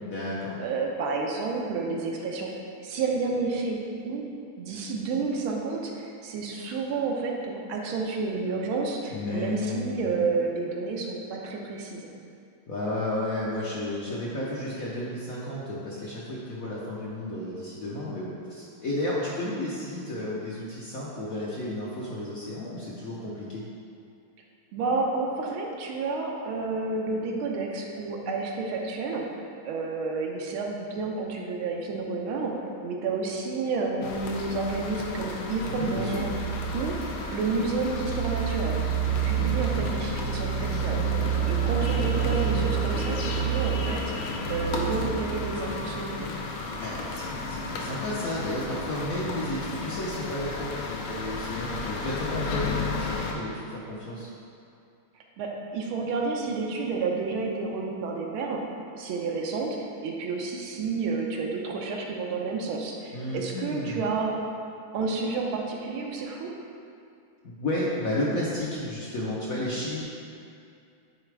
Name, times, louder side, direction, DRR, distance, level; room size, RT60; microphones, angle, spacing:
voice 1, 0.0-0.6 9.1-10.2 12.7-23.6 35.8-36.2 39.2-39.9 46.8-54.3 63.1-64.0 67.4-70.0, left 1 dB, 60° left, -6 dB, 0.9 m, -32 dB
voice 2, 0.6-2.5 2.8-3.8 4.0-4.2 4.6-12.1 19.5-19.6 24.7-29.2 29.6-32.5 32.8-36.3 36.7-37.0 37.3-38.8 39.0-41.0 41.4-46.3 52.5-52.7 55.4-58.6 59.0-59.8 60.0-64.3 64.9-66.5 69.6-69.7, right 4 dB, 80° right, 0 dB, 1.6 m, -30 dB
sound 1, 34.0-53.3, right 3 dB, 75° left, 1.5 m, -30 dB
9.6 x 4.1 x 3.4 m, 2.5 s
omnidirectional pair, 2.4 m